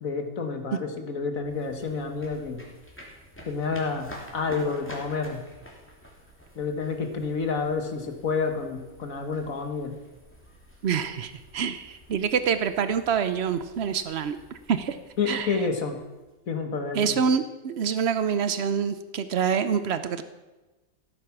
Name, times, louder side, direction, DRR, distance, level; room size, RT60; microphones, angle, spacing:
voice 1, 0.0-2.6 3.4-5.5 6.5-9.9 15.2-16.0 16.5-17.2, left 4 dB, 50° left, 6 dB, 1.7 m, -29 dB
sound 1, 1.4-16.5, equal, 5° left, 2.8 m, -49 dB
voice 2, 10.8-14.4 14.7-15.0 15.3-15.6 16.9-20.2, right 7 dB, 75° right, 11 dB, 0.6 m, -26 dB
16.0 x 9.1 x 5.9 m, 1.1 s
omnidirectional pair, 2.0 m